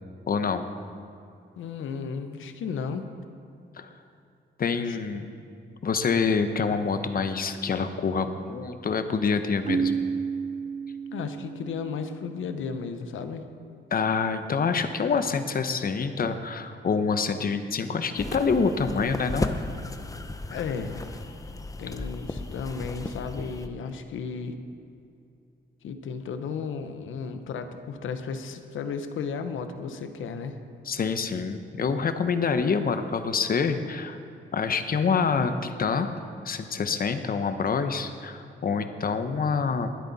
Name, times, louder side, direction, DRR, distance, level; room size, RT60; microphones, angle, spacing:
voice 1, 0.3-0.6 3.7-3.9 4.6-5.3 5.8-9.9 13.9-19.5 30.8-34.2 34.5-36.1 36.4-39.9, left 5 dB, 45° left, 9 dB, 0.9 m, -26 dB
voice 2, 1.6-3.1 4.9-5.0 11.1-13.5 20.5-24.6 25.8-30.6, left 5 dB, 85° left, 8 dB, 0.9 m, -34 dB
Keyboard (musical), 9.7-12.3, right 6 dB, 40° right, 0.7 m, -31 dB
sound 1, 18.2-23.7, left 2 dB, 15° left, 0.7 m, -35 dB
21.0 x 8.4 x 4.1 m, 2.6 s
cardioid pair, 95°, 20 cm